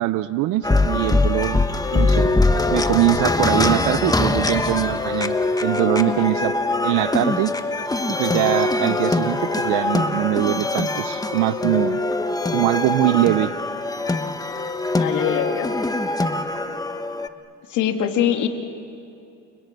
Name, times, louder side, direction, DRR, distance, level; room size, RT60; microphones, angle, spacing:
voice 1, 0.0-1.6 1.9-2.3 2.7-5.3 5.6-6.5 6.8-7.5 8.2-12.0 12.5-13.5, right 16 dB, 85° right, 13 dB, 0.7 m, -22 dB
sound 1, 0.6-17.3, left 2 dB, 10° left, 1.2 m, -22 dB
voice 2, 15.0-15.7 17.7-18.5, left 10 dB, 75° left, 5 dB, 2.3 m, -23 dB
29.5 x 29.5 x 6.7 m, 2.6 s
cardioid pair, 105°, 30 cm